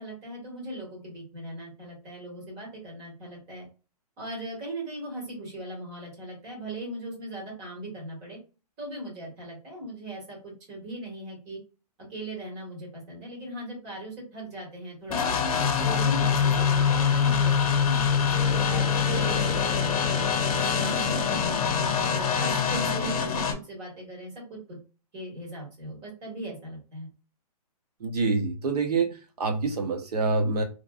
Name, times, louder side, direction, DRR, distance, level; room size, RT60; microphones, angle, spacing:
voice 1, 0.0-3.6 4.2-8.4 8.8-11.6 12.1-15.4 15.8-20.4 20.6-21.5 21.9-24.8 25.1-27.1, right 1 dB, 25° right, -4 dB, 1.5 m, -39 dB
sound 1, 15.1-23.5, left 6 dB, 60° left, 0.7 m, -24 dB
voice 2, 28.0-30.6, right 3 dB, 70° right, 5 dB, 0.9 m, -26 dB
3.1 x 2.6 x 2.3 m, 0.32 s
hypercardioid pair, 170°, 20 cm